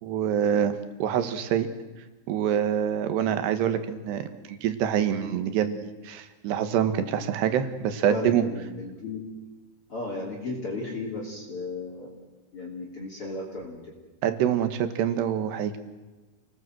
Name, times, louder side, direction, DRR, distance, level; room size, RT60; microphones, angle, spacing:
voice 1, 0.0-0.7 1.0-1.7 2.3-8.4 14.2-15.8, right 9 dB, 85° right, 9 dB, 3.7 m, -26 dB
voice 2, 8.1-9.3 9.9-12.1 12.5-13.9, left 3 dB, 35° left, -3 dB, 3.6 m, -35 dB
29.0 x 19.0 x 7.8 m, 1.2 s
omnidirectional pair, 4.7 m